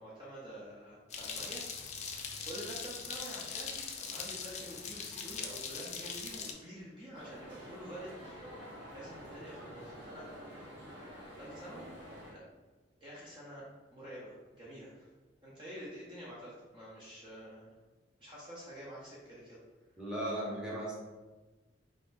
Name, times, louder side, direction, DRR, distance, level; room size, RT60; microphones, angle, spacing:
voice 1, 0.0-1.7 2.4-10.3 10.7-11.9 12.3-12.4 13.0-13.7 13.9-15.1 15.4-17.8 18.2-19.6, equal, 25° right, -7 dB, 0.8 m, -48 dB
sound 1, 1.1-6.5, left 5 dB, 40° left, 0.5 m, -41 dB
sound 2, 7.1-12.3, equal, 85° right, 1.4 m, -49 dB
voice 2, 20.0-20.9, right 1 dB, 5° right, -6 dB, 1.1 m, -36 dB
4.9 x 4.1 x 2.6 m, 1.2 s
head